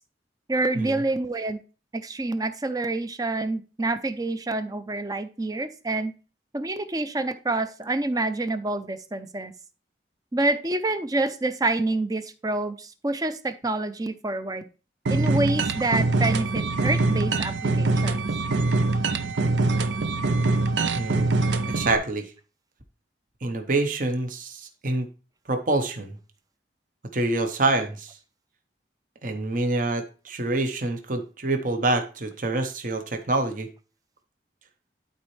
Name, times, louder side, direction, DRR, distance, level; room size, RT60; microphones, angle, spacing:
voice 1, 0.5-1.6 1.9-6.1 6.5-9.5 10.3-14.7 15.1-18.2, right 2 dB, 20° right, 11 dB, 0.5 m, -27 dB
sound 1, 15.1-22.0, right 3 dB, 90° right, 0.6 m, -24 dB
voice 2, 20.9-21.3 21.7-22.3 23.4-25.1 25.5-26.2 27.1-28.2 29.2-33.7, right 2 dB, 50° right, 6 dB, 0.9 m, -26 dB
12.0 x 4.2 x 3.2 m, 0.35 s
head